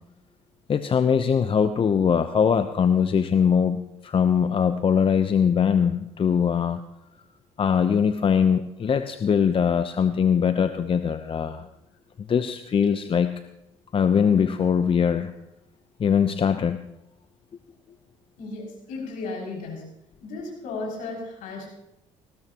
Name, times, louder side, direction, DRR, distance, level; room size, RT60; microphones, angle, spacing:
voice 1, 0.7-6.8 7.6-11.7 12.2-13.3 13.9-15.3 16.0-16.8, left 7 dB, 35° left, 10 dB, 0.8 m, -22 dB
voice 2, 18.4-19.9 20.2-21.7, left 3 dB, 65° left, -2 dB, 6.5 m, -34 dB
20.0 x 16.5 x 3.0 m, 0.87 s
hypercardioid pair, 55°, 15 cm